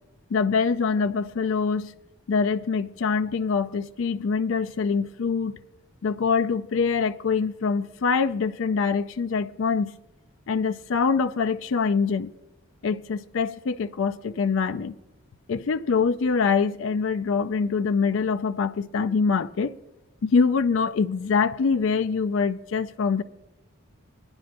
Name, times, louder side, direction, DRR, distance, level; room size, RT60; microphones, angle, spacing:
voice 1, 0.3-1.9 2.3-5.6 6.0-9.9 10.5-12.3 12.8-14.9 15.5-19.7 20.2-23.2, left 5 dB, 65° left, 0.4 m, -24 dB
21.0 x 10.5 x 2.5 m
head